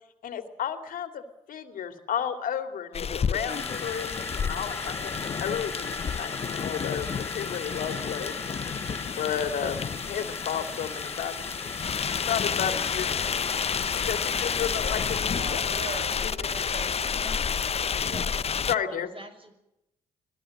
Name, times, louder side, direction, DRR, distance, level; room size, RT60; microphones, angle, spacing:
voice 1, 0.2-5.1 5.4-8.3 9.0-11.3 12.2-13.2 13.9-15.6 16.2-16.5 18.7-19.1, left 8 dB, 65° left, 8 dB, 2.6 m, -32 dB
sound 1, 2.9-18.8, left 7 dB, 40° left, 0.8 m, -30 dB
sound 2, 3.5-15.2, left 2 dB, 15° left, 1.9 m, -39 dB
voice 2, 15.3-17.4, right 3 dB, 55° right, 0 dB, 7.0 m, -40 dB
voice 3, 18.0-18.5 18.9-19.5, right 2 dB, 35° right, 8 dB, 5.9 m, -44 dB
25.5 x 17.5 x 7.8 m, 0.85 s
hypercardioid pair, 45°, 15 cm